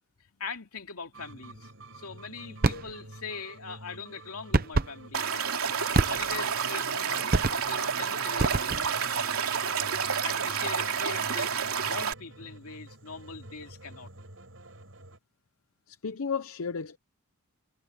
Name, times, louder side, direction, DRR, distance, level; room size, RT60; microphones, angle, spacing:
voice 1, 0.4-9.4 10.2-14.1, left 5 dB, 90° left, 2.6 m, -42 dB
sound 1, 1.1-15.2, right 1 dB, 60° right, 7.9 m, -49 dB
sound 2, 2.6-2.9 4.5-4.9 5.9-6.5 7.3-7.8 8.4-9.0, right 3 dB, 40° right, 0.8 m, -26 dB
Stream / Liquid, 5.1-12.1, right 6 dB, 80° right, 3.0 m, -29 dB
voice 2, 15.9-17.0, left 5 dB, 70° left, 0.6 m, -33 dB
head